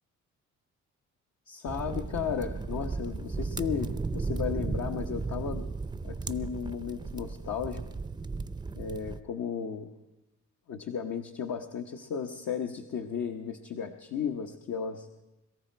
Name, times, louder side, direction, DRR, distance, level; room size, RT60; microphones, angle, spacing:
voice 1, 1.5-5.6 6.0-7.8 8.7-9.9 10.7-15.1, left 7 dB, 65° left, 3 dB, 1.2 m, -34 dB
sound 1, 1.7-9.2, right 4 dB, 15° right, 0.6 m, -35 dB
22.0 x 14.0 x 4.5 m, 0.95 s
cardioid pair, 90°, 30 cm